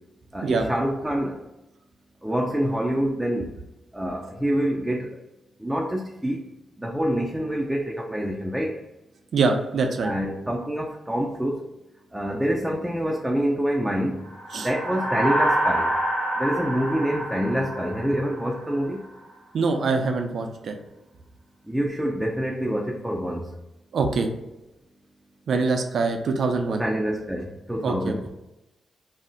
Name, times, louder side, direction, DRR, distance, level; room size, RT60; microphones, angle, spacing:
voice 1, 0.3-1.4 2.2-3.5 3.9-5.2 5.6-6.4 6.8-8.8 10.0-11.7 12.1-14.2 14.5-15.9 16.4-19.0 21.7-23.5 26.7-28.3, equal, 10° right, -1 dB, 0.4 m, -26 dB
voice 2, 9.3-10.1 14.5-14.7 19.5-20.8 23.9-24.3 25.5-26.8 27.8-28.1, right 4 dB, 70° right, 4 dB, 0.4 m, -24 dB
sound 1, 14.3-18.9, right 1 dB, 75° left, 1.3 m, -27 dB
2.4 x 2.0 x 3.7 m, 0.95 s
supercardioid pair, 45°, 0 cm